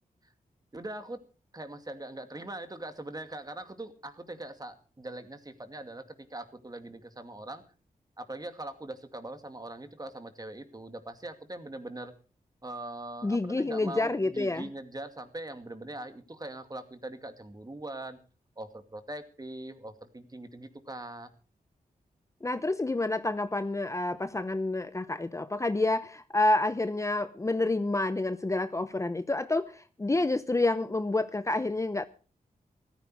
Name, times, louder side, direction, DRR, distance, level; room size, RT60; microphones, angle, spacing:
voice 1, 0.7-1.2 1.5-7.6 8.2-12.1 12.6-18.2 18.6-21.3, right 1 dB, 25° right, 8 dB, 2.3 m, -41 dB
voice 2, 13.2-14.7 22.4-32.0, left 2 dB, 20° left, 12 dB, 0.7 m, -28 dB
15.0 x 14.5 x 4.8 m, 0.38 s
cardioid pair, 75°, 15 cm